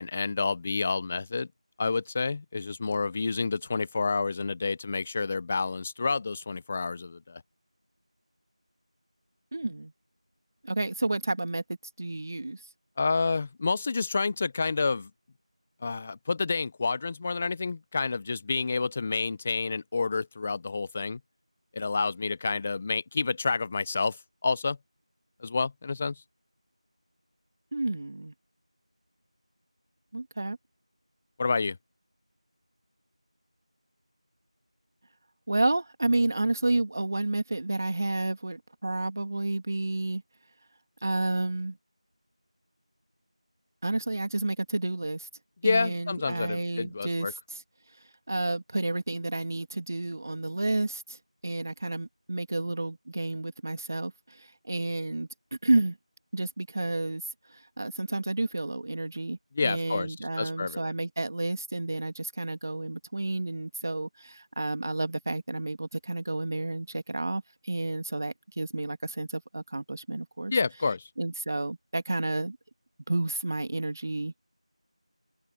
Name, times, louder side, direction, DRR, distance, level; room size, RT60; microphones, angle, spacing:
voice 1, 0.0-1.5 1.8-7.4 13.0-15.1 15.8-21.2 21.7-24.2 24.4-24.8 25.4-26.1 31.4-31.8 45.6-47.3 59.5-60.9 70.5-71.1, left 4 dB, 10° left, 0.6 m, -29 dB
voice 2, 9.5-9.9 10.6-11.6 12.0-12.6 27.7-28.3 30.1-30.6 35.5-40.2 41.0-41.8 43.8-45.3 45.6-47.3 48.3-51.2 51.4-54.1 54.4-55.3 55.6-56.0 56.3-57.2 57.8-59.4 59.6-70.5 71.2-72.6 73.1-74.4, right 2 dB, 30° right, 2.6 m, -30 dB
figure-of-eight pair, 175°, 3 cm